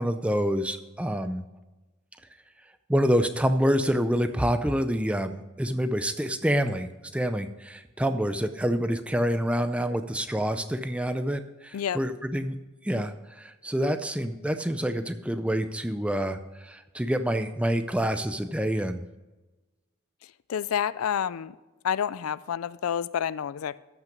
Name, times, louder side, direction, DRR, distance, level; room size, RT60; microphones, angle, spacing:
voice 1, 0.0-1.4 2.9-12.6 12.8-19.0, equal, 5° right, 9 dB, 0.4 m, -27 dB
voice 2, 20.5-21.6 21.8-23.8, left 8 dB, 85° left, 18 dB, 0.4 m, -29 dB
13.5 x 6.0 x 5.2 m, 1.1 s
head